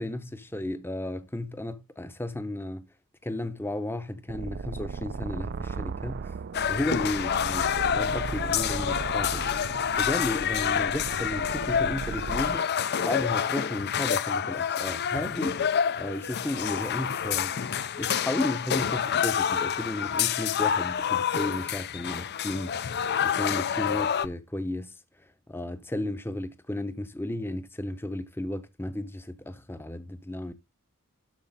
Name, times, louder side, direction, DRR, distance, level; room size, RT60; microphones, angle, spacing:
voice 1, 0.0-2.9 3.2-6.3 6.7-9.5 10.0-12.7 13.0-15.6 16.0-17.5 18.0-22.8 23.2-24.9 25.5-30.5, left 1 dB, 10° left, 0.7 m, -33 dB
sound 1, 4.3-12.6, right 5 dB, 45° right, 0.4 m, -36 dB
sound 2, 6.5-24.3, left 8 dB, 50° left, 0.5 m, -28 dB
12.5 x 4.6 x 4.0 m
head